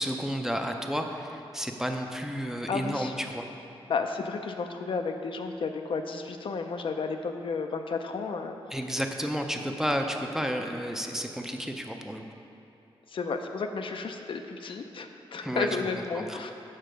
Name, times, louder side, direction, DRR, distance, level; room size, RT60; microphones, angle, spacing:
voice 1, 0.0-3.5 8.7-12.2 15.4-15.8 16.1-16.4, equal, 5° right, 3 dB, 0.5 m, -31 dB
voice 2, 2.7-3.1 3.9-8.6 13.1-16.5, left 4 dB, 60° left, 5 dB, 0.5 m, -32 dB
6.5 x 5.6 x 5.1 m, 2.7 s
wide cardioid pair, 100°, 10 cm